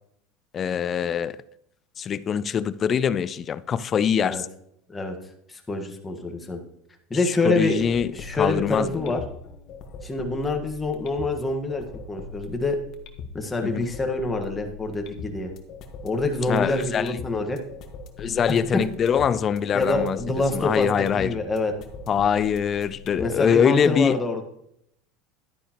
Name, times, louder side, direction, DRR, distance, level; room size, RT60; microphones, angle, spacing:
voice 1, 0.5-1.4 2.0-4.5 7.4-8.1 8.4-9.1 13.6-13.8 16.5-17.2 18.2-20.2 20.5-21.4 22.1-24.2, left 7 dB, 30° left, 0.4 m, -23 dB
voice 2, 5.5-6.6 7.1-7.8 8.1-9.2 10.0-12.8 13.3-15.5 16.0-17.6 18.5-18.8 19.7-21.7 23.1-24.4, left 2 dB, 15° left, 1.5 m, -26 dB
sound 1, 7.4-23.4, left 5 dB, 50° left, 1.3 m, -41 dB
11.5 x 9.9 x 3.0 m
supercardioid pair, 130°, 0 cm